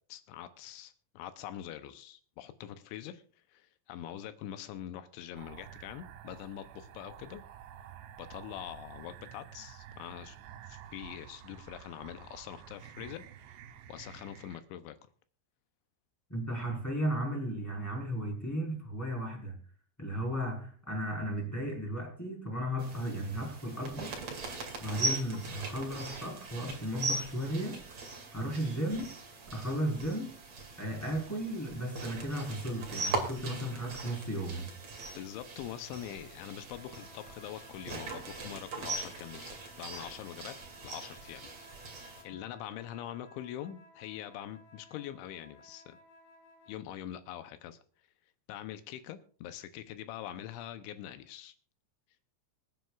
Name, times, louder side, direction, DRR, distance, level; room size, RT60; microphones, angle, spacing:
voice 1, 0.1-3.2 3.5-7.4 8.2-10.4 10.7-13.6 13.9-15.0 35.1-40.6 40.8-41.5 42.2-46.0 46.7-47.8 48.5-51.5, left 11 dB, 80° left, 10 dB, 3.0 m, -44 dB
sound 1, 5.4-14.6, right 9 dB, 75° right, 2.9 m, -50 dB
voice 2, 16.3-19.6 20.0-24.2 24.8-28.0 28.3-29.1 29.5-30.3 30.8-34.7, equal, 5° left, -1 dB, 3.3 m, -35 dB
sound 2, 22.8-42.2, right 2 dB, 40° right, 2.8 m, -40 dB
sound 3, 36.6-46.8, left 2 dB, 40° left, 3.7 m, -58 dB
25.5 x 9.4 x 2.4 m, 0.43 s
omnidirectional pair, 5.4 m